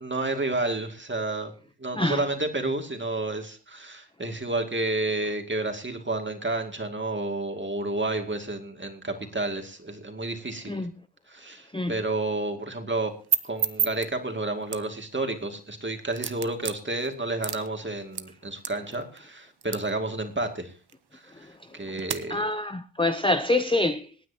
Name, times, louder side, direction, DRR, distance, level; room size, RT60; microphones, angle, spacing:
voice 1, 0.0-1.5 1.8-10.9 11.3-13.1 13.4-20.7 21.1-21.5 21.7-22.4, right 2 dB, 25° right, 2.4 m, -30 dB
sound 1, 12.9-22.2, right 7 dB, 60° right, 1.0 m, -35 dB
voice 2, 22.3-24.1, left 2 dB, 10° left, 0.6 m, -25 dB
26.5 x 9.4 x 2.9 m
wide cardioid pair, 110°, 44 cm